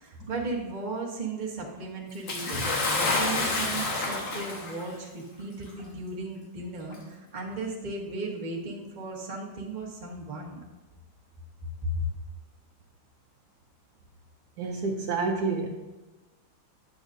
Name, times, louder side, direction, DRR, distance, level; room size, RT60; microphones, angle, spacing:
voice 1, 0.0-10.6 11.8-12.0, right 2 dB, 25° right, -3 dB, 1.2 m, -35 dB
Bathtub (filling or washing) / Splash splatter, 2.3-4.9 5.8-5.9 6.9-7.0, left 2 dB, 85° left, 2.0 m, -28 dB
voice 2, 14.6-15.7, right 4 dB, 70° right, 0 dB, 1.2 m, -28 dB
10.0 x 7.1 x 2.6 m, 1.1 s
omnidirectional pair, 2.0 m